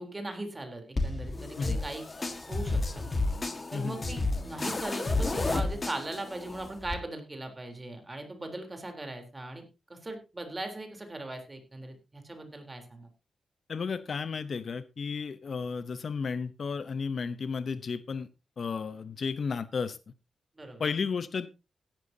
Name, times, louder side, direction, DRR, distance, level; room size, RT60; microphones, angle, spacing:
voice 1, 0.0-3.0 3.7-9.6 9.9-13.1 20.6-20.8, right 2 dB, 20° right, 3.6 m, -39 dB
sound 1, 1.0-6.9, left 2 dB, 30° left, 1.7 m, -31 dB
voice 2, 13.7-18.3 18.6-20.0 20.8-21.5, left 5 dB, 55° left, 0.8 m, -33 dB
16.5 x 12.0 x 2.8 m
cardioid pair, 105°, 0 cm